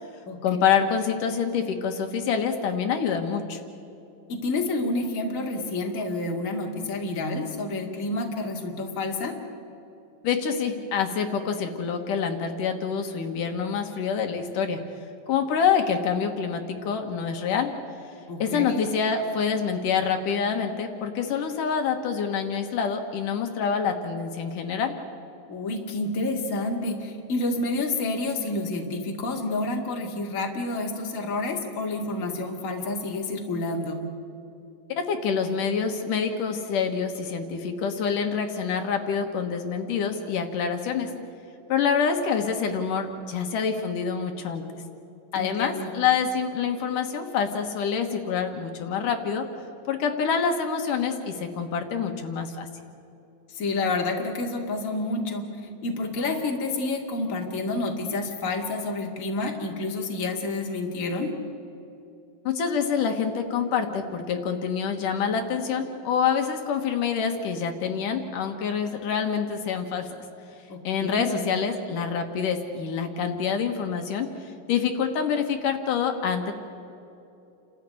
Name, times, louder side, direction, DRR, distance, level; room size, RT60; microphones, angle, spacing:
voice 1, 0.4-3.6 10.2-14.8 15.3-17.7 18.4-25.0 35.0-41.1 41.7-44.6 45.3-49.5 49.9-52.7 62.4-70.1 70.8-74.3 74.7-76.5, left 6 dB, 70° left, 5 dB, 2.9 m, -26 dB
voice 2, 4.3-9.3 18.3-18.8 25.5-34.0 45.4-45.9 53.5-55.5 55.8-61.3 70.7-71.4, left 2 dB, 25° left, 1 dB, 2.1 m, -29 dB
29.0 x 13.5 x 9.7 m, 2.8 s
omnidirectional pair, 3.9 m